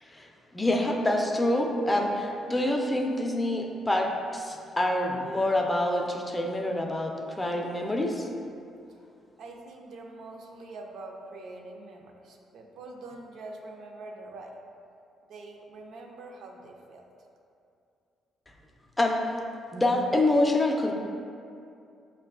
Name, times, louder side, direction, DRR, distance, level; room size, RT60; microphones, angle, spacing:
voice 1, 0.0-8.3 19.0-19.4 19.7-20.9, left 1 dB, 15° left, 1 dB, 0.4 m, -26 dB
voice 2, 9.4-14.5 15.3-17.0, right 2 dB, 75° right, 2 dB, 0.4 m, -44 dB
5.2 x 2.2 x 2.4 m, 2.5 s
cardioid pair, 90°, 0 cm